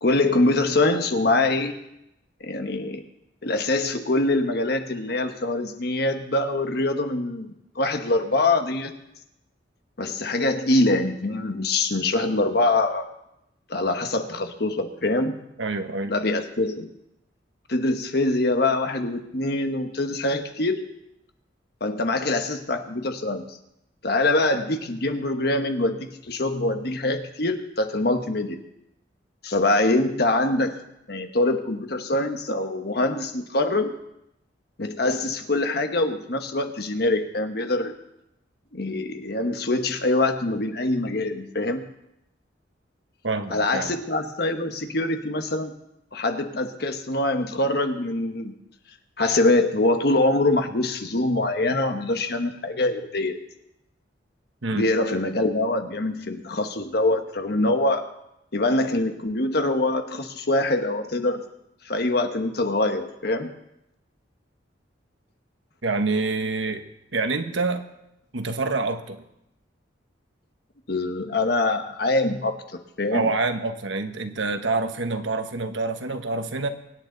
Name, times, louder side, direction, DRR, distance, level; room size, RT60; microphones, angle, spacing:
voice 1, 0.0-1.8 2.4-3.0 3.4-7.5 7.8-8.9 10.0-13.1 13.7-15.3 16.1-16.9 17.7-20.9 21.8-23.4 24.0-28.6 29.4-30.8 31.1-33.9 34.8-37.9 38.7-41.8 43.5-45.7 46.1-48.5 49.2-53.4 54.7-58.1 58.5-61.4 61.8-63.5 70.9-72.6 73.0-73.3, left 2 dB, 55° left, 7 dB, 1.2 m, -24 dB
voice 2, 15.6-16.1 43.2-43.9 54.6-54.9 65.8-66.8 67.1-67.8 68.3-69.2 73.1-76.7, right 3 dB, 85° right, 8 dB, 1.1 m, -26 dB
23.5 x 9.4 x 3.9 m, 0.84 s
head